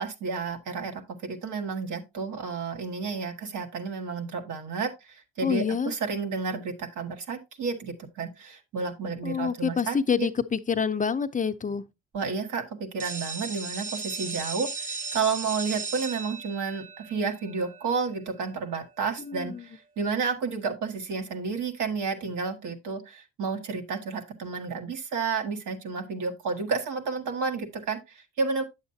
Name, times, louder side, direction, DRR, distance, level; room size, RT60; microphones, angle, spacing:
voice 1, 0.0-10.3 12.1-28.6, right 5 dB, 80° right, 1.5 m, -31 dB
voice 2, 5.4-5.9 9.2-11.8 19.3-19.6, left 6 dB, 25° left, 0.5 m, -27 dB
sound 1, 13.0-18.6, right 4 dB, 30° right, 0.8 m, -36 dB
8.6 x 7.2 x 2.7 m
cardioid pair, 90°, 30 cm